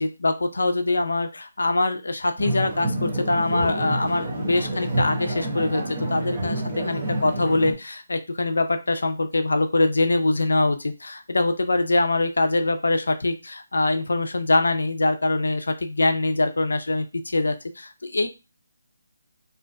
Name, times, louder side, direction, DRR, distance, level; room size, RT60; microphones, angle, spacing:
voice 1, 0.0-18.3, left 2 dB, 85° left, 7 dB, 0.4 m, -23 dB
sound 1, 2.4-7.7, right 1 dB, 25° right, 0.6 m, -28 dB
2.4 x 2.2 x 2.4 m, 0.27 s
hypercardioid pair, 170°, 0 cm